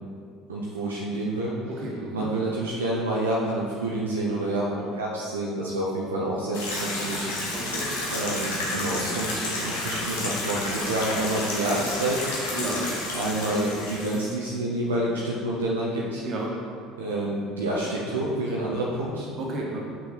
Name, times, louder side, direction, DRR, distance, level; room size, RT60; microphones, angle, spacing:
voice 1, 0.5-1.6 2.1-7.3 8.1-12.3 13.1-16.2 17.0-19.3, right 1 dB, 80° right, -5 dB, 0.7 m, -28 dB
voice 2, 1.8-2.3 7.5-7.9 12.5-12.9 16.2-16.5 19.4-19.8, right 1 dB, 45° right, -2 dB, 1.6 m, -32 dB
sound 1, 6.5-14.3, left 2 dB, 70° left, 1.3 m, -31 dB
5.7 x 5.6 x 4.5 m, 2.2 s
figure-of-eight pair, 60°, 0 cm